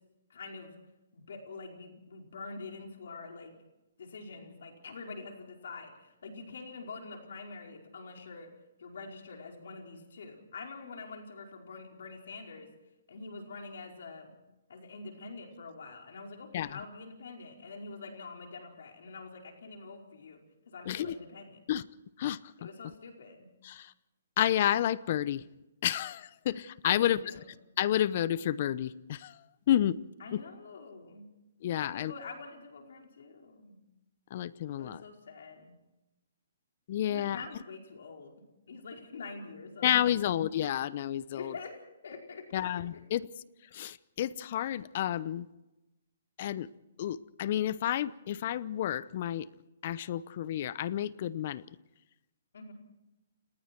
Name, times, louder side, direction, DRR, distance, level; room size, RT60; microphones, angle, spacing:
voice 1, 0.3-0.7 1.1-3.6 4.0-8.5 8.8-12.7 13.1-14.3 14.7-20.4 20.7-21.6 22.6-23.5 26.8-27.4 30.2-31.3 31.8-33.8 34.8-35.7 37.1-40.2 41.3-41.8 42.0-42.6 42.9-43.0 52.5-52.7, left 4 dB, 70° left, 2 dB, 5.1 m, -45 dB
voice 2, 20.9-21.2 21.7-21.9 22.2-22.7 23.6-23.9 24.4-25.5 25.8-27.2 27.8-30.0 30.3-30.4 31.6-32.1 34.3-35.0 36.9-37.4 39.8-41.5 42.5-43.3 43.7-45.5 46.4-46.7 47.0-49.5 49.8-51.6, left 11 dB, 50° left, 19 dB, 0.8 m, -30 dB
29.5 x 19.5 x 4.6 m, 0.97 s
hypercardioid pair, 140°, 0 cm